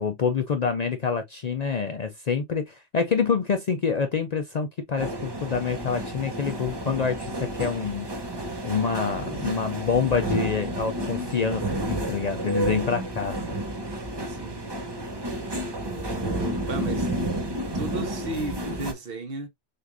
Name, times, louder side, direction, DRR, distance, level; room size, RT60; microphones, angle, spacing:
voice 1, 0.0-8.1 8.6-13.3, left 6 dB, 50° left, 0.5 m, -26 dB
sound 1, 5.0-18.9, right 1 dB, 25° right, 0.9 m, -31 dB
voice 2, 15.8-17.1 17.7-19.5, right 3 dB, 60° right, 1.1 m, -35 dB
6.5 x 2.5 x 2.6 m
omnidirectional pair, 1.1 m